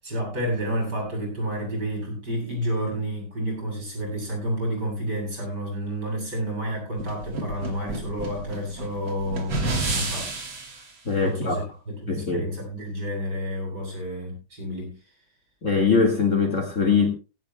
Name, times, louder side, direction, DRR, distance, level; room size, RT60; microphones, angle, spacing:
voice 1, 0.0-10.3 11.2-15.0, equal, 50° right, 8.8 m, -30 dB
sound 1, 7.0-10.9, right 2 dB, 65° right, 3.6 m, -30 dB
voice 2, 11.1-11.6 12.1-12.5 15.6-17.1, left 5 dB, 35° left, 2.0 m, -22 dB
17.0 x 17.0 x 2.2 m
omnidirectional pair, 2.3 m